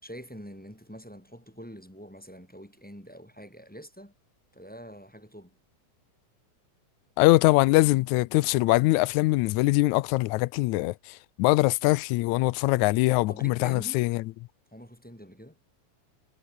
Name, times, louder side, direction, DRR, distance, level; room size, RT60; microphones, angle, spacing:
voice 1, 0.0-4.1 4.5-5.5 13.3-14.0 14.7-15.6, equal, 5° left, 3.7 m, -45 dB
voice 2, 7.2-14.2, left 20 dB, 80° left, 1.9 m, -23 dB
omnidirectional pair, 3.5 m